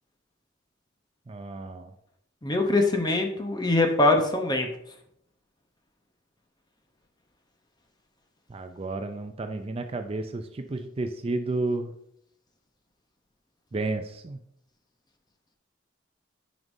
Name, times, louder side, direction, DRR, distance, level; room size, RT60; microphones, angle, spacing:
voice 1, 1.3-1.9 8.5-11.9 13.7-14.4, right 2 dB, 30° right, 7 dB, 0.4 m, -32 dB
voice 2, 2.4-4.7, left 2 dB, 20° left, 4 dB, 0.8 m, -23 dB
9.3 x 5.2 x 2.7 m, 0.74 s
head